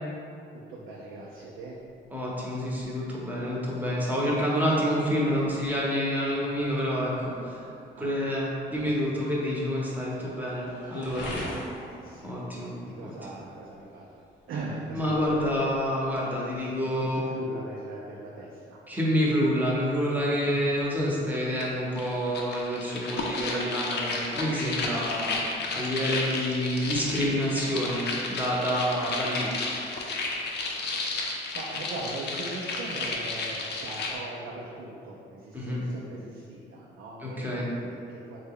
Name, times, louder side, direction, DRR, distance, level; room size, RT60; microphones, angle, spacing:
voice 1, 0.7-1.8 7.9-8.1 8.7-8.9 10.9-12.3 12.9-14.1 14.5-15.7 16.8-18.8 30.9-31.1 31.5-38.4, right 2 dB, 80° right, -4 dB, 0.4 m, -40 dB
sound 1, 1.4-16.8, left 1 dB, 80° left, 0.9 m, -46 dB
voice 2, 2.1-7.6 8.0-11.3 12.2-12.7 13.0-13.1 14.9-17.2 18.9-25.4 25.7-29.5 35.5-35.8 37.2-37.7, equal, 10° right, -5 dB, 0.8 m, -28 dB
sound 2, 21.6-21.7 22.0-34.1, left 3 dB, 60° left, 0.5 m, -32 dB
3.3 x 2.2 x 3.6 m, 2.6 s
cardioid pair, 90°, 20 cm